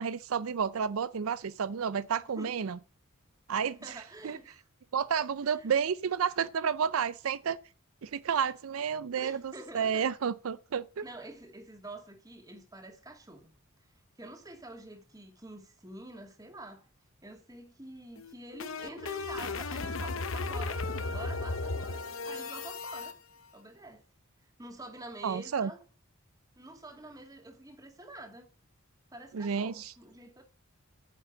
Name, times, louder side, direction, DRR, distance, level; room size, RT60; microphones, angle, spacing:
voice 1, 0.0-2.8 3.5-3.8 4.2-4.4 4.9-7.6 8.0-11.0 25.2-25.7 29.3-29.9, right 7 dB, 80° right, 0.5 m, -31 dB
voice 2, 3.8-4.7 5.4-5.7 9.2-10.1 11.0-13.5 14.2-16.9 17.2-20.8 21.1-23.2 23.5-24.0 24.6-25.8 26.6-28.5 29.1-30.4, right 1 dB, 15° right, 2.2 m, -47 dB
sound 1, 18.2-23.1, left 3 dB, 70° left, 0.9 m, -35 dB
9.4 x 7.2 x 7.7 m
head